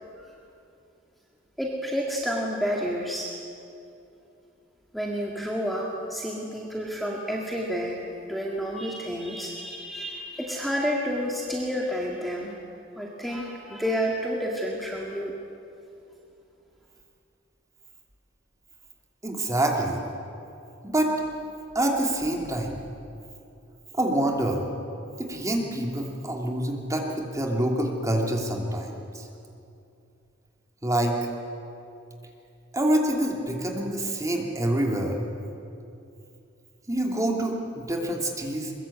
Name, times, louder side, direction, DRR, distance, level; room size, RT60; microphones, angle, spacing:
voice 1, 1.6-3.4 4.9-12.5 13.0-15.4, equal, ahead, -2 dB, 2.1 m, -30 dB
voice 2, 19.2-20.0 20.8-21.1 21.7-22.8 23.9-24.7 25.2-29.3 30.8-31.2 32.7-35.1 36.9-38.8, right 1 dB, 15° right, 1 dB, 2.8 m, -26 dB
22.5 x 22.0 x 8.6 m, 2.6 s
head